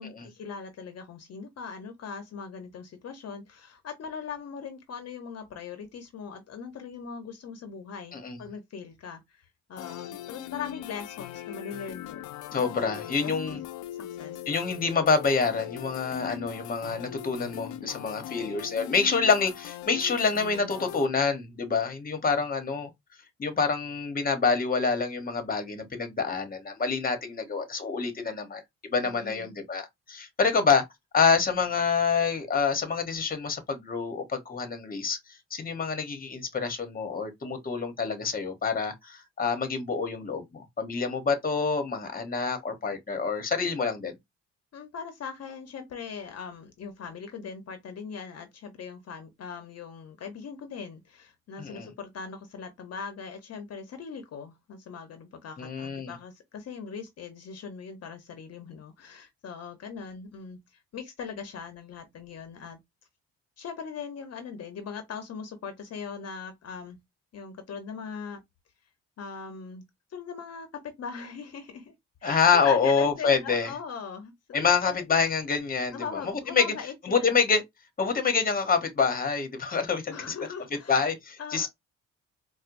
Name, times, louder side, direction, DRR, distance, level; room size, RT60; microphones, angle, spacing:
voice 1, 0.0-13.6 14.2-14.4 29.0-29.5 44.7-62.8 63.6-67.0 67.3-68.4 69.2-69.8 70.1-71.9 72.2-75.0 75.9-77.4 80.1-81.0 81.4-81.7, left 6 dB, 55° left, 0.8 m, -40 dB
sound 1, 9.8-21.1, left 13 dB, 85° left, 0.5 m, -40 dB
voice 2, 12.5-13.6 14.5-22.9 23.4-30.8 31.1-35.2 35.5-44.2 51.6-51.9 55.6-56.1 72.2-73.7 74.5-76.7 77.0-77.6 78.0-80.3 80.9-81.7, left 5 dB, 30° left, 1.0 m, -27 dB
4.4 x 2.2 x 2.6 m
cardioid pair, 90°, 30 cm